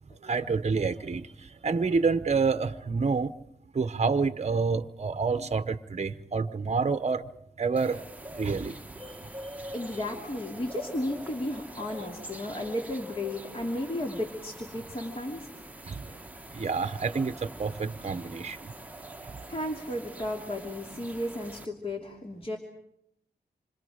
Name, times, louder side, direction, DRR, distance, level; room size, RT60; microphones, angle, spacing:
voice 1, 0.2-3.3 3.7-7.3 7.6-8.0 8.4-9.1 9.7-9.8 15.9-16.2 16.5-18.7, right 4 dB, 40° right, 12 dB, 1.0 m, -28 dB
sound 1, 7.8-21.7, right 1 dB, 10° right, 1.2 m, -44 dB
voice 2, 9.7-15.5 19.5-22.6, left 1 dB, 30° left, 1 dB, 2.8 m, -34 dB
27.5 x 25.5 x 5.0 m, 0.75 s
cardioid pair, 80°, 17 cm